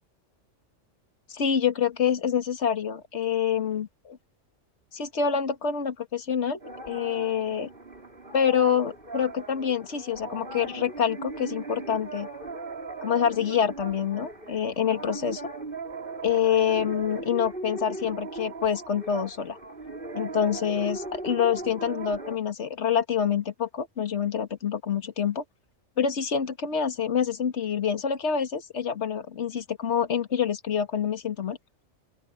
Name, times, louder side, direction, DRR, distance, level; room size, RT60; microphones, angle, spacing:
voice 1, 1.3-4.2 4.9-6.6 6.9-7.7 8.3-12.3 13.0-15.5 16.2-19.6 20.1-25.4 26.0-31.6, left 8 dB, 60° left, 2.0 m, -26 dB
sound 1, 6.6-22.4, right 3 dB, 45° right, 4.9 m, -38 dB
open air
omnidirectional pair, 1.3 m